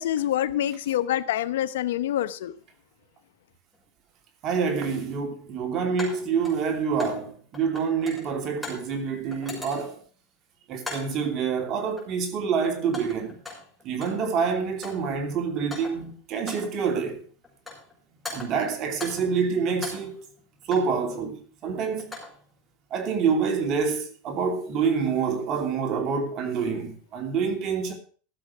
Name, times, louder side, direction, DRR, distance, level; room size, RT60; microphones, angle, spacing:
voice 1, 0.0-2.5, left 12 dB, 85° left, 0.9 m, -26 dB
sound 1, 3.7-3.8 6.0-7.3 7.5-8.9 9.3-10.0 10.8-11.2 12.0-12.3 12.6-14.3 14.6-15.1 15.5-16.1 16.5-16.8 17.4-17.9 18.2-19.4 19.7-21.0 21.8-22.4, left 3 dB, 5° left, 6.2 m, -40 dB
voice 2, 4.4-10.0 10.7-13.4 13.8-17.2 18.3-20.2 20.6-22.1 22.9-27.9, right 6 dB, 40° right, 2.8 m, -27 dB
14.5 x 7.6 x 6.1 m
supercardioid pair, 125°, 0 cm